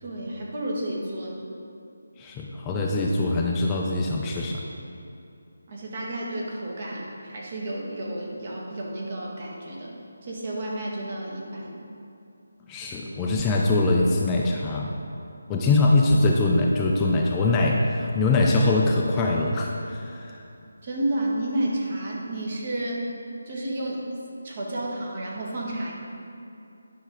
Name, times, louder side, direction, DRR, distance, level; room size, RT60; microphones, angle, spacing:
voice 1, 0.0-1.4 5.7-9.9 10.2-11.8 20.8-23.1 23.4-25.9, right 1 dB, 45° right, -3 dB, 1.6 m, -31 dB
voice 2, 2.2-4.7 12.7-14.9 15.5-20.4, left 2 dB, 15° left, -2 dB, 0.5 m, -23 dB
10.5 x 5.6 x 3.8 m, 2.7 s
figure-of-eight pair, 160°, 0 cm